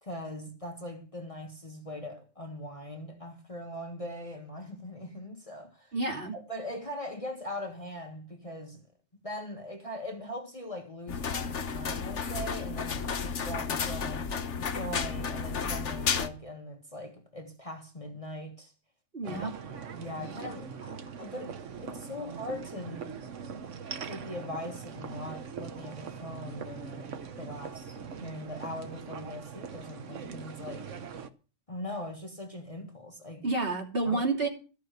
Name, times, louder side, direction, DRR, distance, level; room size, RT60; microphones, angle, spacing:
voice 1, 0.0-5.9 6.3-8.8 9.2-14.3 14.6-18.7 19.2-23.1 23.6-30.9 31.7-33.5 34.0-34.3, left 1 dB, 25° left, 1.5 m, -41 dB
voice 2, 5.9-6.3 19.1-19.5 33.4-34.5, right 3 dB, 45° right, 3.1 m, -29 dB
sound 1, 11.1-16.3, left 6 dB, 65° left, 1.3 m, -32 dB
sound 2, 19.2-31.3, right 6 dB, 65° right, 1.3 m, -41 dB
14.0 x 6.2 x 8.0 m
omnidirectional pair, 1.4 m